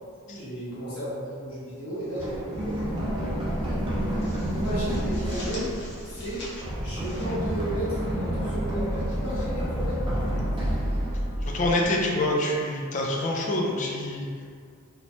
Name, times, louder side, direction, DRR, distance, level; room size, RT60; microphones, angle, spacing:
voice 1, 0.3-3.0 3.5-5.7 6.0-6.4 6.8-10.1 10.6-11.5, equal, 85° left, -11 dB, 1.0 m, -35 dB
sound 1, 2.0-2.8 3.1-3.3 3.7-8.2, left 1 dB, 55° left, 0.9 m, -45 dB
Run, 2.2-11.9, equal, 25° right, 0.6 m, -29 dB
sound 2, 4.6-11.9, equal, 15° left, 0.8 m, -38 dB
voice 2, 11.4-14.3, left 1 dB, 35° left, -1 dB, 0.4 m, -26 dB
3.0 x 2.2 x 2.6 m, 2.2 s
head